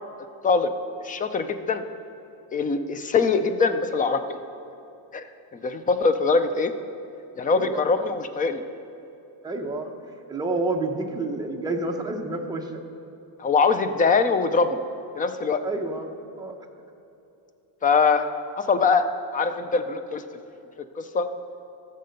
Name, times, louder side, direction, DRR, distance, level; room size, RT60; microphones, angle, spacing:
voice 1, 1.0-1.8 2.5-4.2 5.1-5.2 5.6-6.7 7.4-8.6 13.4-14.8 15.2-15.6 17.8-18.3 18.6-20.2 21.0-21.3, left 4 dB, 20° left, 10 dB, 0.3 m, -22 dB
voice 2, 7.4-7.9 9.4-9.9 10.3-12.8 15.6-16.1 16.4-16.5, right 2 dB, 10° right, 1 dB, 0.8 m, -29 dB
14.5 x 6.6 x 5.2 m, 2.9 s
cardioid pair, 145°, 46 cm